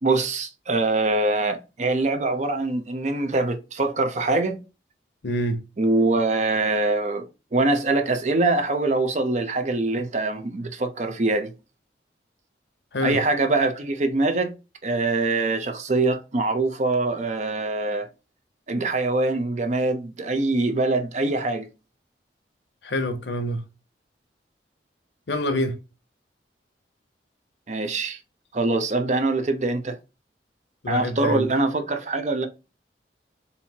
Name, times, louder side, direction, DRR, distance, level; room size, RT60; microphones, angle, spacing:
voice 1, 0.0-4.6 5.8-11.5 13.0-14.5 14.8-18.1 18.7-21.7 27.7-28.2 28.5-30.0 30.9-32.5, right 2 dB, 40° right, 0.6 m, -23 dB
voice 2, 5.2-5.6 12.9-13.2 22.8-23.6 25.3-25.8 30.8-31.5, left 1 dB, 80° left, 0.7 m, -26 dB
4.3 x 2.7 x 2.8 m
head